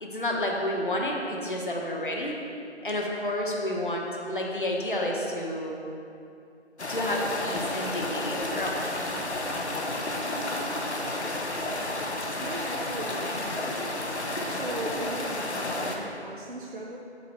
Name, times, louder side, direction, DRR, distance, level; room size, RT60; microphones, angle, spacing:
voice 1, 0.0-2.4 2.8-5.7 6.9-8.8, left 1 dB, 45° left, -1 dB, 1.1 m, -30 dB
sound 1, 6.8-16.0, left 1 dB, 70° left, 1.1 m, -31 dB
voice 2, 12.4-13.9 14.5-17.0, right 1 dB, 50° right, -2 dB, 0.5 m, -38 dB
7.5 x 5.2 x 4.5 m, 2.6 s
figure-of-eight pair, 175°, 35 cm